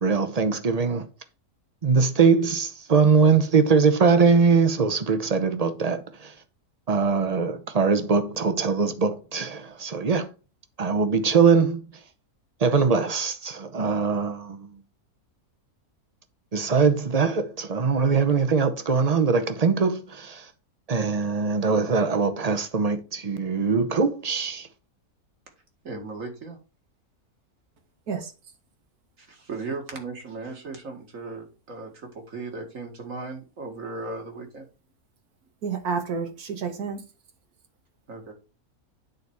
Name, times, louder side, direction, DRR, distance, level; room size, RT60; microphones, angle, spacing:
voice 1, 0.0-1.1 1.8-6.3 6.9-10.3 10.8-11.9 12.6-14.7 16.5-20.5 20.9-24.7, right 5 dB, 35° right, 0.7 m, -22 dB
voice 2, 25.8-26.6 29.2-34.7 38.1-38.3, right 3 dB, 60° right, 2.3 m, -36 dB
voice 3, 35.6-37.0, right 5 dB, 85° right, 1.7 m, -30 dB
9.2 x 4.1 x 4.6 m
omnidirectional pair, 1.6 m